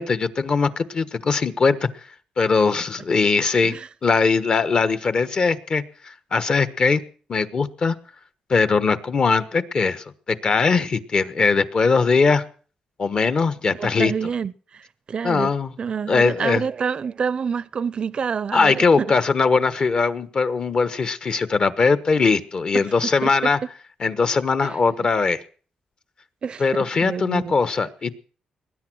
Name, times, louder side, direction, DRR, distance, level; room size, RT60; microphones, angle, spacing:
voice 1, 0.0-1.9 2.4-7.0 7.3-7.9 8.5-12.4 13.0-14.1 15.2-15.7 16.1-16.6 18.5-23.6 24.0-25.4 26.6-28.2, left 4 dB, 45° left, 1.2 m, -20 dB
voice 2, 13.7-15.5 15.8-19.2 22.7-22.8 23.2-23.3 24.6-24.8 26.4-26.6 27.0-27.5, right 6 dB, 45° right, 0.6 m, -27 dB
20.0 x 10.0 x 6.2 m
cardioid pair, 100°, 2 cm